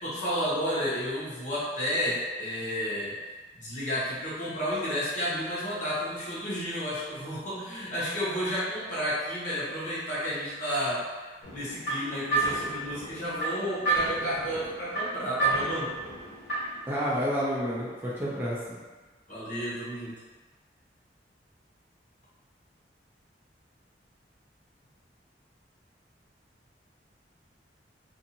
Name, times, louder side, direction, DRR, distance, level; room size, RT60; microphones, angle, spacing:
voice 1, 0.0-3.2 3.5-11.1 11.5-15.9 19.3-20.2, equal, 45° left, -9 dB, 1.0 m, -31 dB
sound 1, 11.4-16.9, right 3 dB, 80° left, 1.1 m, -31 dB
voice 2, 16.9-18.8, equal, 15° right, -8 dB, 0.4 m, -30 dB
2.6 x 2.4 x 2.7 m, 1.3 s
head